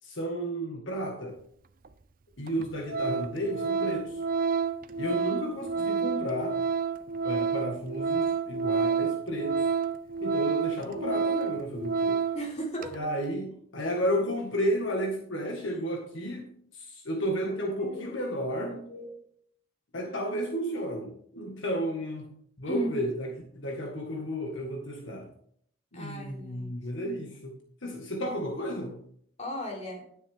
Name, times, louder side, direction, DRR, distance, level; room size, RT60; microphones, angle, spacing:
voice 1, 0.0-1.4 2.4-4.2 5.0-6.6 7.2-9.7 10.2-12.2 12.9-18.8 19.9-22.3 22.6-25.3 25.9-27.5 27.8-29.0, equal, 70° left, 2 dB, 1.7 m, -32 dB
Organ, 1.8-1.9 2.5-2.6 2.9-12.5 12.8-13.0, right 5 dB, 45° right, 0.5 m, -29 dB
voice 2, 5.7-6.1 12.3-13.1 17.8-19.2 22.7-22.9 25.9-26.7 29.4-30.0, right 1 dB, 35° left, -2 dB, 3.3 m, -37 dB
11.0 x 9.7 x 3.5 m, 0.64 s
head